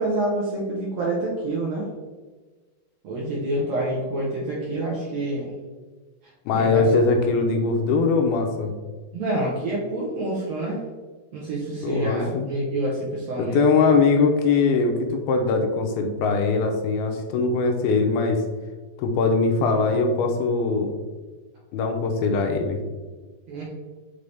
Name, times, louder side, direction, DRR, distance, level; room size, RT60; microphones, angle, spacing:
voice 1, 0.0-1.9 3.0-5.5 6.5-6.8 9.1-10.8 11.3-13.6 13.9-14.0 23.5-23.6, right 1 dB, 85° right, -5 dB, 1.4 m, -27 dB
voice 2, 6.5-8.7 11.8-12.5 13.4-18.4 19.0-20.9 21.7-22.8, left 4 dB, 80° left, 4 dB, 2.6 m, -21 dB
5.7 x 5.4 x 3.4 m, 1.3 s
omnidirectional pair, 4.6 m